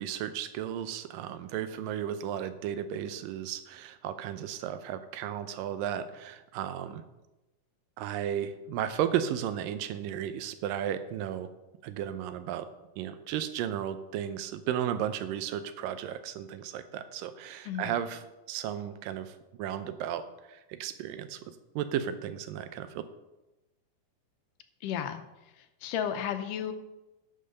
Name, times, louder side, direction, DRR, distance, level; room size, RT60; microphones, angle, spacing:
voice 1, 0.0-7.0 8.0-11.5 11.8-12.7 13.0-18.2 18.5-23.1, right 10 dB, 85° right, 11 dB, 2.4 m, -34 dB
voice 2, 24.8-25.2 25.6-26.7, left 9 dB, 80° left, 8 dB, 2.2 m, -33 dB
10.5 x 5.6 x 6.6 m, 1.0 s
omnidirectional pair, 3.9 m